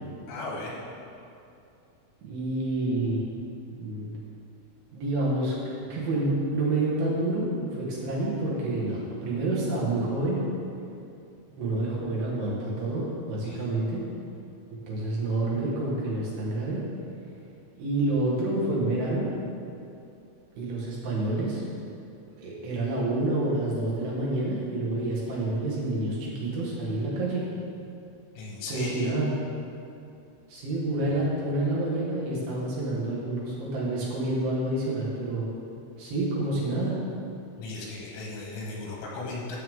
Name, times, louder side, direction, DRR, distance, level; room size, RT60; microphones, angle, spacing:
voice 1, 0.3-0.8 13.4-13.7 28.4-29.1 37.6-39.6, left 2 dB, 75° left, -3 dB, 3.4 m, -36 dB
voice 2, 2.2-3.2 3.7-4.2 4.9-10.4 11.6-14.0 14.9-16.8 17.8-19.3 20.5-21.6 22.4-27.4 28.7-29.3 30.5-35.4 36.0-37.0, right 2 dB, 65° right, -6 dB, 2.5 m, -28 dB
9.6 x 7.1 x 3.6 m, 2.6 s
omnidirectional pair, 6.0 m